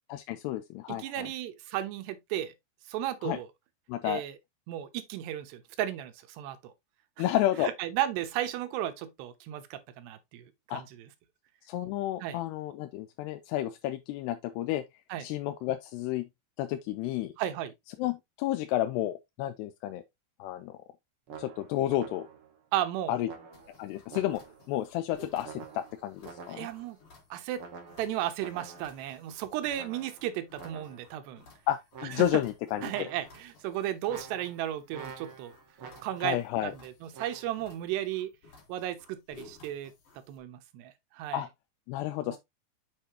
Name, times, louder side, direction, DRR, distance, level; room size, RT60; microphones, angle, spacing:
voice 1, 0.1-1.3 3.2-3.4 3.9-4.2 7.2-7.7 10.7-10.8 11.7-14.8 15.2-16.3 16.6-17.3 18.0-20.0 20.4-20.8 21.4-22.3 23.1-23.3 23.8-24.4 24.7-26.7 31.7-32.9 36.2-36.7 41.3-41.5 41.9-42.4, left 13 dB, 85° left, 2.7 m, -31 dB
voice 2, 0.9-2.5 2.9-3.5 4.0-4.3 4.7-6.7 7.2-7.3 7.6-11.1 12.2-12.4 15.1-15.3 17.4-17.7 22.7-23.2 26.5-27.0 27.3-27.6 28.0-31.5 32.2-32.4 32.8-35.5 36.0-38.3 38.7-39.9 40.3-41.4 42.3-42.4, right 12 dB, 85° right, 3.1 m, -34 dB
sound 1, 21.3-22.6 23.2-24.7 25.4-26.9 27.6-29.2 29.7-31.2 31.9-32.5 32.8-33.5 34.1-36.4 37.1-37.5, right 6 dB, 65° right, 1.3 m, -47 dB
sound 2, 23.5-40.4, left 2 dB, 45° left, 2.4 m, -57 dB
6.9 x 6.6 x 2.9 m
omnidirectional pair, 4.8 m